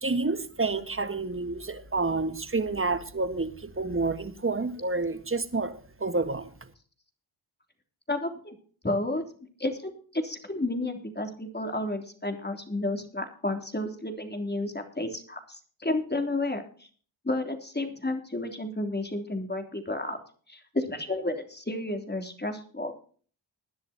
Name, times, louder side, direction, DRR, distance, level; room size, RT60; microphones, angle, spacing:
voice 1, 0.0-6.5, right 3 dB, 25° right, 1.5 m, -29 dB
voice 2, 8.1-8.6 8.8-9.2 9.6-16.9 17.2-20.2 20.5-22.9, left 2 dB, 20° left, 3.3 m, -31 dB
20.5 x 10.5 x 2.9 m
cardioid pair, 50°, 47 cm